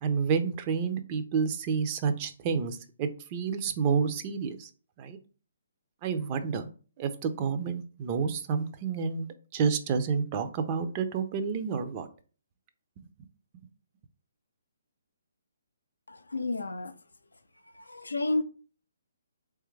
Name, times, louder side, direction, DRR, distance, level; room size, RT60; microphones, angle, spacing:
voice 1, 0.0-4.7 5.0-5.2 6.0-6.7 7.0-12.1, right 6 dB, 30° right, 0.5 m, -29 dB
voice 2, 16.1-16.9 17.7-18.4, left 2 dB, 80° left, 0.4 m, -31 dB
3.4 x 3.2 x 3.2 m
figure-of-eight pair, 135°, 0 cm